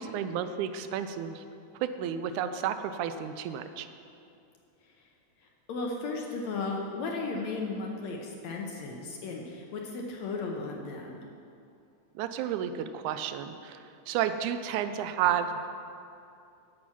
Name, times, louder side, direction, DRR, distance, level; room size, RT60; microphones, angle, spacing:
voice 1, 0.0-1.4 1.8-3.9 12.2-13.8 14.1-15.5, right 9 dB, 80° right, 10 dB, 1.9 m, -31 dB
voice 2, 5.7-11.2, left 3 dB, 75° left, 0 dB, 1.9 m, -35 dB
8.9 x 5.9 x 7.1 m, 2.6 s
omnidirectional pair, 3.6 m